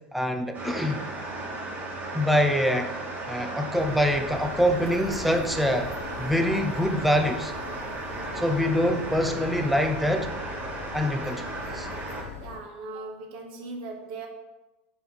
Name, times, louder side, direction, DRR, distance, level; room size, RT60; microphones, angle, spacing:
voice 1, 0.1-1.0 2.1-2.9 3.3-5.9 6.2-7.5 8.4-10.3 10.9-11.9, equal, ahead, 5 dB, 0.4 m, -25 dB
sound 1, 0.5-12.2, right 2 dB, 25° right, 1.0 m, -35 dB
sound 2, 3.7-12.6, left 7 dB, 45° left, 0.6 m, -42 dB
voice 2, 12.4-14.3, right 3 dB, 55° right, 2 dB, 0.8 m, -39 dB
4.4 x 2.6 x 3.9 m, 1.0 s
hypercardioid pair, 90°, 7 cm